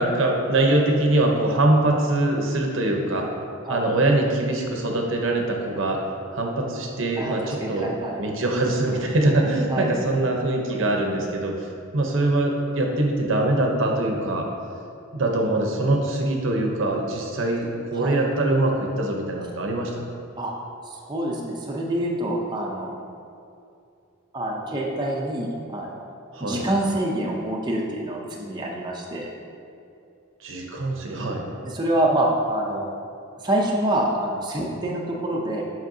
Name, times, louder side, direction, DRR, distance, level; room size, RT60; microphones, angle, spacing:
voice 1, 0.0-3.3 3.7-6.0 6.3-7.9 8.2-14.5 15.1-19.9 26.3-26.6 30.4-31.4, right 2 dB, 70° right, 1 dB, 0.8 m, -23 dB
voice 2, 7.2-8.2 9.7-9.9 18.0-18.2 20.4-20.5 20.9-22.9 24.3-25.9 26.4-29.3 31.6-32.9 33.4-35.6, right 1 dB, 20° right, -2 dB, 0.5 m, -26 dB
7.5 x 5.5 x 2.7 m, 2.6 s
head